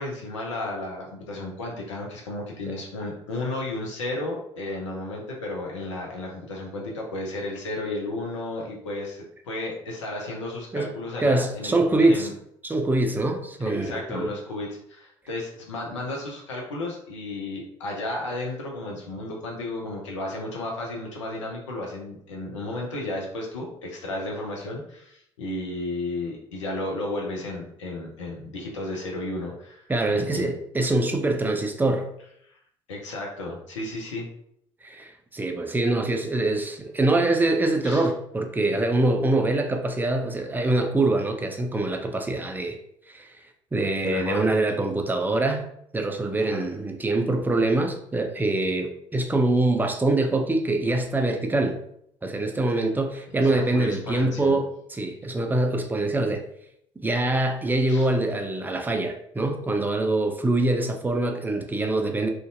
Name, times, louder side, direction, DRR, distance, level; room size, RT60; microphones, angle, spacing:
voice 1, 0.0-12.3 13.6-30.5 32.4-32.6 32.9-34.3 37.8-38.1 44.0-44.5 46.4-46.7 53.3-54.6 57.9-58.1, left 2 dB, 80° left, -1 dB, 0.5 m, -33 dB
voice 2, 11.2-12.3 12.6-14.3 29.9-32.1 34.8-42.8 43.1-43.3 43.7-45.7 45.9-51.8 52.2-54.7 54.9-56.5 57.0-62.3, right 2 dB, 10° right, 5 dB, 0.4 m, -24 dB
2.5 x 2.1 x 2.6 m, 0.71 s
figure-of-eight pair, 50°, 15 cm